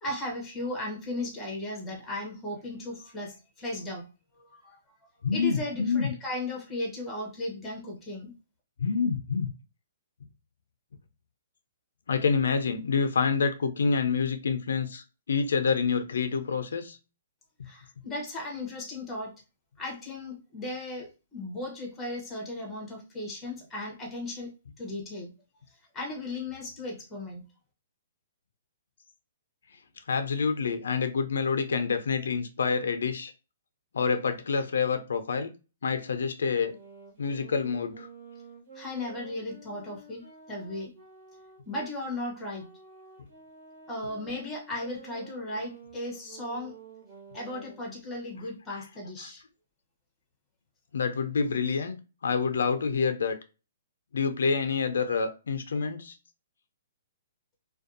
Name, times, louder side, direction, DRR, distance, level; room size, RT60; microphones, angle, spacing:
voice 1, 0.0-4.1 4.4-4.8 5.3-8.3 17.6-19.3 19.8-25.3 25.9-27.5 38.7-40.9 41.7-42.7 43.9-46.8 47.3-49.4, left 2 dB, 5° left, 0.7 m, -36 dB
voice 2, 5.2-6.1 8.8-9.5 12.1-17.0 30.1-33.3 33.9-35.5 35.8-36.8 37.2-38.1 48.7-48.8 50.9-52.0 52.2-53.4 54.1-56.2, left 5 dB, 80° left, 0.4 m, -27 dB
sound 1, 36.4-41.9 42.5-47.9, right 5 dB, 50° right, 1.3 m, -50 dB
2.5 x 2.2 x 2.4 m
hypercardioid pair, 165°, 0 cm